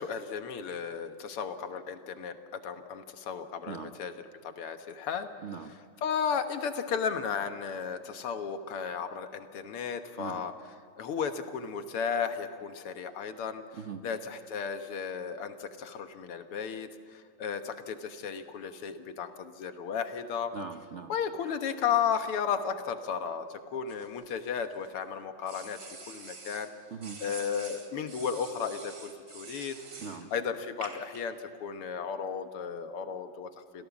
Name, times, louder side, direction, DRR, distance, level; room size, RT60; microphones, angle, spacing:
voice 1, 0.0-2.4 2.6-4.1 4.4-5.3 6.0-10.5 11.0-13.6 14.0-20.5 21.1-25.8 26.1-26.7 27.2-29.8 30.3-33.9, left 7 dB, 85° left, 8 dB, 2.2 m, -34 dB
voice 2, 20.5-21.1 26.9-27.2 30.0-30.3, right 6 dB, 65° right, 7 dB, 0.6 m, -40 dB
sound 1, 23.9-24.9 25.5-26.7 27.0-30.2 30.8-31.2, right 3 dB, 45° right, 2.9 m, -46 dB
26.5 x 17.0 x 7.2 m, 2.3 s
omnidirectional pair, 2.4 m